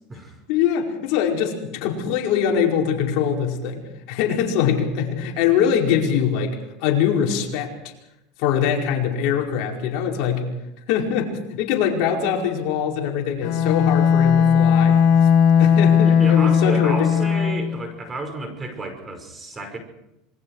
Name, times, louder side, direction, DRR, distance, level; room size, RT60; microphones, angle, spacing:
voice 1, 0.5-6.5 6.8-7.7 8.4-10.5 10.9-15.0 15.6-17.1, left 8 dB, 65° left, 0 dB, 5.0 m, -22 dB
Bowed string instrument, 13.4-17.7, left 7 dB, 50° left, 4.7 m, -17 dB
voice 2, 16.0-19.8, right 2 dB, 20° right, 6 dB, 5.6 m, -31 dB
27.0 x 22.5 x 4.9 m, 0.87 s
supercardioid pair, 120°, 0 cm